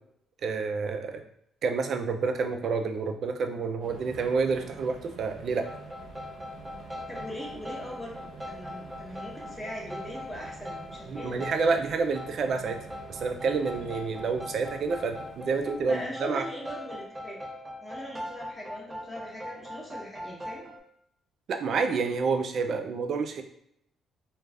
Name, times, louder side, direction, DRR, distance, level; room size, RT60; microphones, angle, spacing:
voice 1, 0.4-1.2 1.6-5.7 11.1-12.8 13.1-16.5 21.5-23.4, right 4 dB, 60° right, 6 dB, 0.4 m, -29 dB
sound 1, 3.8-16.1, right 3 dB, 80° right, 0.7 m, -47 dB
sound 2, 5.6-20.8, left 1 dB, 15° right, 0.7 m, -41 dB
voice 2, 7.1-11.4 15.9-17.4 17.8-20.6, equal, 15° left, -3 dB, 0.9 m, -40 dB
2.4 x 2.3 x 3.3 m, 0.72 s
cardioid pair, 90°, 0 cm